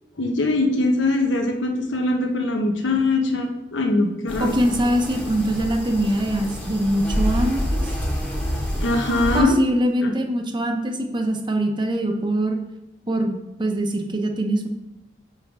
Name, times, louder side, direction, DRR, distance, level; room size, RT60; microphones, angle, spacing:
voice 1, 0.2-4.6 8.8-9.6 10.0-10.1, left 2 dB, 90° left, 3 dB, 1.0 m, -22 dB
sound 1, 4.3-9.4, equal, 10° left, 1.1 m, -27 dB
voice 2, 4.4-7.8 9.3-12.6 13.1-14.7, right 1 dB, 25° right, 4 dB, 0.7 m, -23 dB
5.8 x 5.2 x 4.6 m, 0.94 s
head